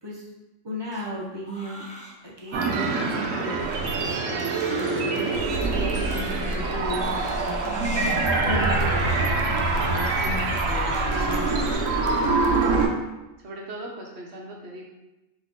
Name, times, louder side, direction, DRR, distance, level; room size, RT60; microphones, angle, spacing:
voice 1, 0.6-1.9 2.2-3.6 4.0-5.4 5.7-7.8 8.5-11.6, left 1 dB, 25° right, -4 dB, 0.6 m, -35 dB
Crying sobbing, 0.9-11.7, equal, 10° left, 0.3 m, -43 dB
sound 1, 2.5-12.9, right 3 dB, 80° right, 1.0 m, -25 dB
sound 2, 5.3-12.9, equal, 80° left, 1.2 m, -33 dB
voice 2, 11.1-11.5 12.2-12.9 13.4-14.8, right 1 dB, 60° right, -1 dB, 1.0 m, -40 dB
3.8 x 3.1 x 3.6 m, 0.99 s
omnidirectional pair, 1.4 m